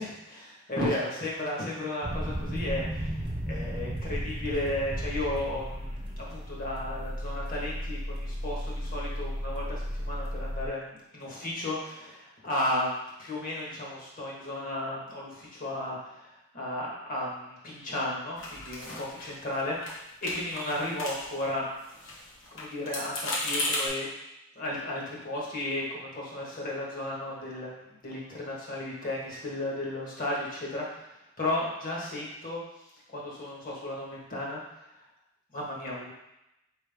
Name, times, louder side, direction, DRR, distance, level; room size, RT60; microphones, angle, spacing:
voice 1, 0.0-16.2 16.5-21.7 22.5-24.1 24.5-31.1 31.4-32.6 33.1-34.6 35.5-36.1, left 1 dB, 45° left, -4 dB, 1.3 m, -34 dB
sound 1, 2.0-10.7, equal, 25° right, 0.8 m, -34 dB
sound 2, 18.4-19.6 19.8-20.0 20.2-21.5 21.8-23.9, left 1 dB, 65° left, 1.2 m, -35 dB
4.6 x 3.3 x 3.4 m, 0.90 s
head